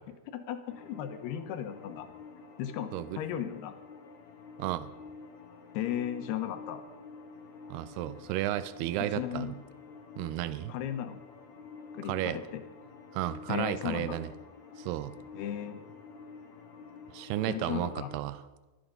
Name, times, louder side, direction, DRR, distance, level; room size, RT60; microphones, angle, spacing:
voice 1, 0.3-2.1 2.6-3.7 5.7-6.8 9.1-9.5 10.7-11.2 11.9-12.6 13.5-14.2 15.3-15.8 17.5-18.1, left 10 dB, 90° left, 8 dB, 3.1 m, -35 dB
sound 1, 0.7-18.2, left 5 dB, 55° left, 2.6 m, -49 dB
voice 2, 7.7-9.6 10.2-10.7 12.1-12.4 13.1-14.3 14.8-15.1 17.1-18.4, right 14 dB, 85° right, 14 dB, 2.7 m, -33 dB
24.5 x 8.6 x 5.3 m, 1.2 s
omnidirectional pair, 4.6 m